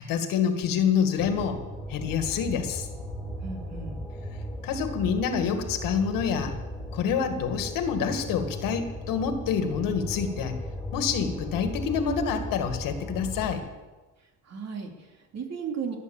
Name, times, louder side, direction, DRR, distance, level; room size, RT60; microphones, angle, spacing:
voice 1, 0.0-1.6 1.9-2.9 4.6-6.6 6.9-10.6 10.9-13.7, left 7 dB, 85° left, 7 dB, 1.9 m, -27 dB
sound 1, 1.2-13.5, left 1 dB, ahead, 3.3 m, -37 dB
voice 2, 3.4-4.0 14.4-16.0, right 6 dB, 50° right, 2 dB, 3.1 m, -35 dB
18.5 x 8.2 x 7.2 m, 1.2 s
cardioid pair, 95°, 33 cm